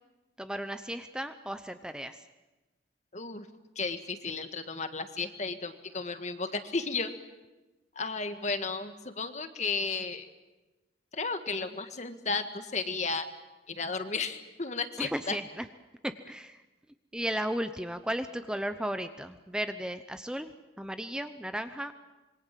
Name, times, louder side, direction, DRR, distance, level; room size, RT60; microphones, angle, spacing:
voice 1, 0.4-2.2 15.0-15.6 16.0-16.6 17.1-20.5 20.8-21.9, equal, 5° right, 9 dB, 0.7 m, -35 dB
voice 2, 3.1-3.5 3.8-7.1 8.0-10.3 11.1-13.3 13.7-15.4, left 4 dB, 40° left, 9 dB, 1.7 m, -33 dB
26.0 x 23.5 x 7.6 m, 1.1 s
head